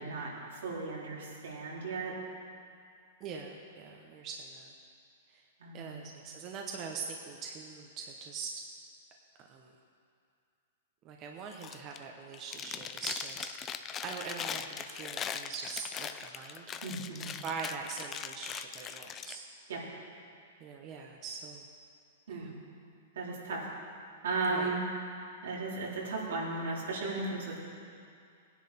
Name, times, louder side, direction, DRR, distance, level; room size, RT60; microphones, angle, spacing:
voice 1, 0.0-2.2 5.6-6.0 16.8-17.3 19.7-19.8 22.3-22.5 23.2-23.7 24.2-24.8 25.4-27.6, right 3 dB, 85° right, -5 dB, 3.7 m, -35 dB
voice 2, 3.2-4.7 5.3-5.4 5.7-8.6 9.4-9.7 11.0-13.5 13.8-16.7 17.4-19.5 20.6-21.7 22.3-22.5 24.5-24.8, right 5 dB, 30° right, 1 dB, 1.0 m, -42 dB
Chewing mastication, 11.5-12.0 12.3-19.4, left 8 dB, 20° left, 0.5 m, -40 dB
17.0 x 10.0 x 4.3 m, 2.4 s
hypercardioid pair, 150°, 0 cm